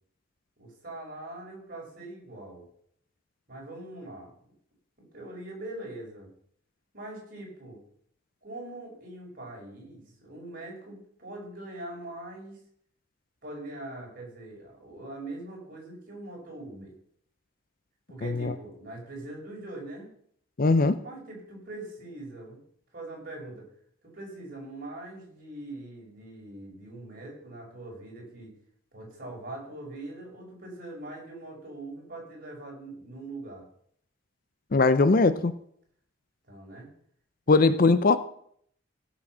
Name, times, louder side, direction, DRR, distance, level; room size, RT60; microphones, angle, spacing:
voice 1, 0.6-2.7 3.5-4.3 5.0-6.3 6.9-7.8 8.4-12.6 13.4-16.9 18.1-20.1 21.0-22.6 22.9-23.7 24.0-28.5 28.9-33.6 36.4-36.9 37.5-37.9, right 2 dB, 45° right, -2 dB, 5.7 m, -42 dB
voice 2, 18.2-18.5 20.6-21.0 34.7-35.5 37.5-38.2, left 3 dB, 45° left, 13 dB, 0.5 m, -20 dB
16.5 x 6.2 x 6.1 m, 0.66 s
head